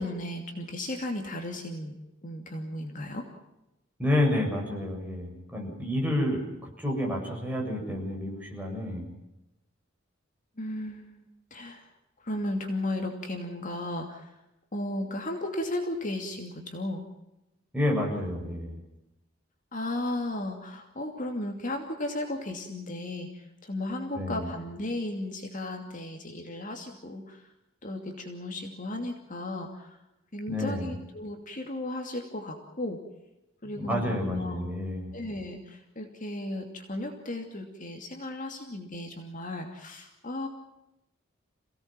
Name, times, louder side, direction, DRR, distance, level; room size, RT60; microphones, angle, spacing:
voice 1, 0.0-3.3 10.6-11.9 12.2-14.3 14.7-17.1 19.7-27.5 27.8-30.0 30.3-33.0 33.6-34.7 35.1-40.5, left 1 dB, 40° left, 3 dB, 2.7 m, -35 dB
voice 2, 4.0-9.0 17.7-18.8 24.1-24.5 30.5-30.9 33.8-35.1, left 1 dB, 10° right, -1 dB, 7.3 m, -29 dB
28.5 x 17.5 x 7.6 m, 0.93 s
head